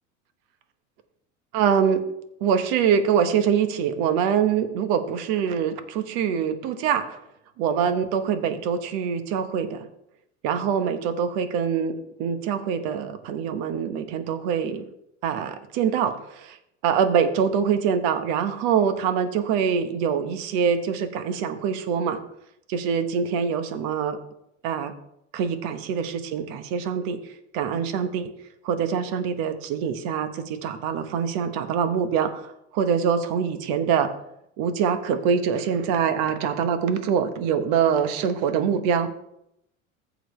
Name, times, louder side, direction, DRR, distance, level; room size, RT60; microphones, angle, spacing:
voice 1, 1.5-2.0 2.4-7.2 7.6-9.9 10.4-14.8 15.2-16.6 16.8-22.2 22.7-24.2 24.6-24.9 25.3-28.3 28.6-34.1 34.6-39.1, right 7 dB, 60° right, 10 dB, 1.2 m, -24 dB
15.0 x 5.2 x 3.2 m, 0.79 s
hypercardioid pair, 85°, 39 cm